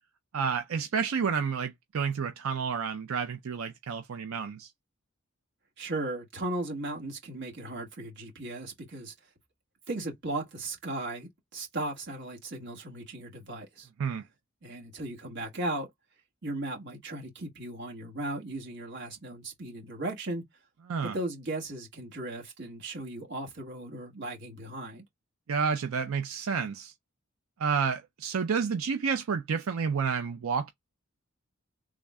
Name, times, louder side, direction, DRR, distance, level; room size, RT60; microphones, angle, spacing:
voice 1, 0.3-4.7 14.0-14.2 20.9-21.1 25.5-26.9 27.6-30.7, right 6 dB, 90° right, 0.5 m, -30 dB
voice 2, 5.8-9.1 9.9-13.9 14.6-15.9 16.4-20.4 21.0-25.0, right 2 dB, 55° right, 1.4 m, -36 dB
3.5 x 2.1 x 3.5 m
head